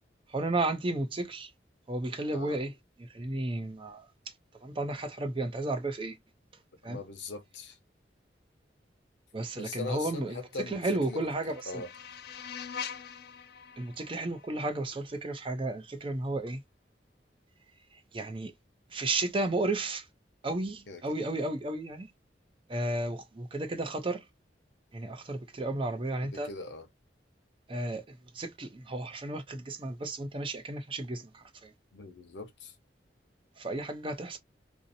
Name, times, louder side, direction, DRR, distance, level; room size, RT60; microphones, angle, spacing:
voice 1, 0.3-1.5 1.9-2.7 3.1-4.1 4.6-6.2 6.8-7.0 9.3-11.8 13.8-16.6 18.1-18.5 18.9-20.0 20.4-22.1 22.7-24.2 24.9-26.5 27.7-28.0 28.3-31.7 33.6-34.4, right 2 dB, 30° right, 0.5 m, -33 dB
voice 2, 6.8-7.8 9.5-10.8 11.1-11.2 11.7-11.9 20.9-21.0 26.2-26.9 31.9-32.7, left 4 dB, 85° left, 0.7 m, -41 dB
sound 1, 10.5-15.5, left 7 dB, 55° left, 0.3 m, -44 dB
2.7 x 2.0 x 2.6 m
head